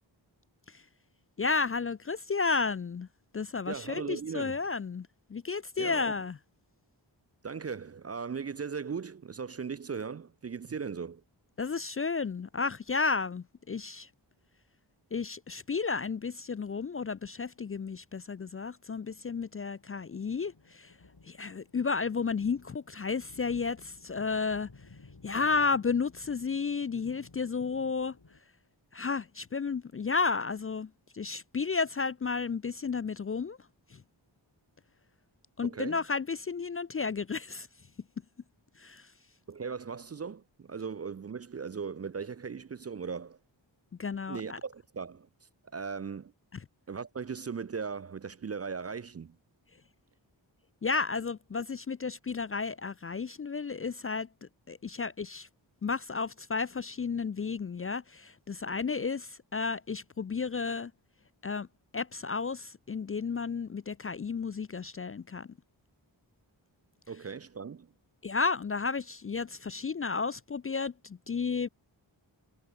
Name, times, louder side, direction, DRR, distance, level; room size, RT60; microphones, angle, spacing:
voice 1, 1.4-3.1 3.3-6.4 11.6-14.1 15.1-20.9 21.2-24.7 25.2-28.1 28.9-33.6 33.9-34.0 35.6-37.7 38.8-39.1 44.0-44.6 50.8-55.5 55.8-60.9 61.4-61.7 61.9-65.5 68.2-71.7, left 4 dB, 30° left, 0.4 m, -32 dB
voice 2, 3.7-4.6 5.8-6.1 7.4-11.2 35.6-36.0 39.5-43.4 44.3-45.3 45.7-46.3 46.9-49.4 67.1-67.9, right 5 dB, 35° right, 0.5 m, -38 dB
sound 1, 18.9-28.4, left 3 dB, 50° left, 7.5 m, -57 dB
cardioid pair, 50°, 47 cm